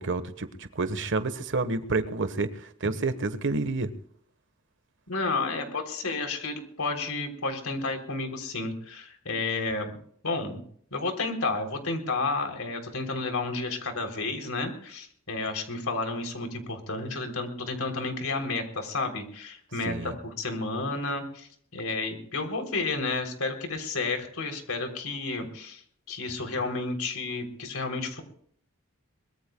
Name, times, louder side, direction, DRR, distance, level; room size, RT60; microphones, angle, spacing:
voice 1, 0.0-3.9 19.8-20.2, right 3 dB, 60° right, 11 dB, 1.2 m, -29 dB
voice 2, 5.1-9.9 10.2-10.6 10.9-25.8 26.1-28.2, left 3 dB, 85° left, 5 dB, 3.4 m, -31 dB
23.5 x 21.0 x 2.3 m, 0.62 s
head